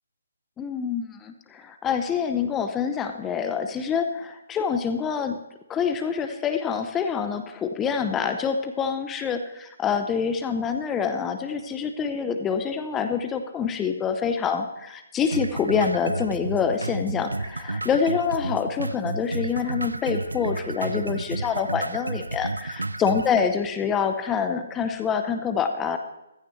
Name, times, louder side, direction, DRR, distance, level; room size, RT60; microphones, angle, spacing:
voice 1, 0.6-5.4 5.7-26.0, left 6 dB, 15° left, 7 dB, 0.8 m, -26 dB
sound 1, 15.3-23.3, right 2 dB, 85° right, 0.6 m, -31 dB
15.5 x 14.0 x 3.3 m, 0.92 s
figure-of-eight pair, 140°, 0 cm